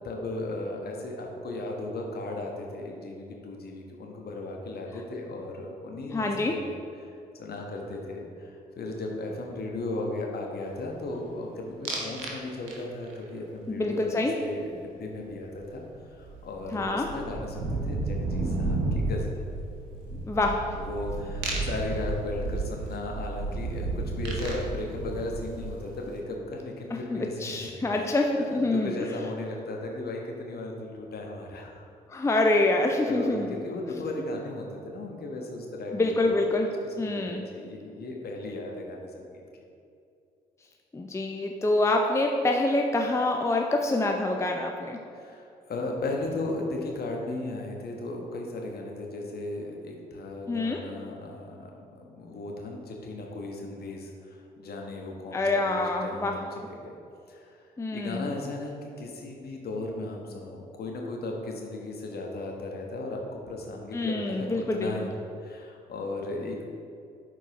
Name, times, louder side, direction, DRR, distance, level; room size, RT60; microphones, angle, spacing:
voice 1, 0.0-7.1 7.4-15.8 16.1-19.4 20.7-31.8 32.4-32.6 33.1-36.5 36.8-39.4 45.1-56.9 57.3-57.6 57.9-65.1 65.4-66.6, left 2 dB, 50° left, 0 dB, 1.2 m, -36 dB
voice 2, 6.1-6.5 13.7-14.4 16.7-17.1 20.3-20.6 27.1-29.1 32.1-33.5 35.9-36.7 37.0-37.4 40.9-45.0 50.5-50.8 55.3-56.4 57.8-58.3 63.9-65.1, left 2 dB, 15° left, 2 dB, 0.6 m, -26 dB
sound 1, 11.8-12.4 12.7-13.1 15.6-15.7 15.9-26.0, right 2 dB, 70° right, 1.0 m, -32 dB
11.0 x 4.5 x 3.0 m, 2.5 s
figure-of-eight pair, 40°, 21 cm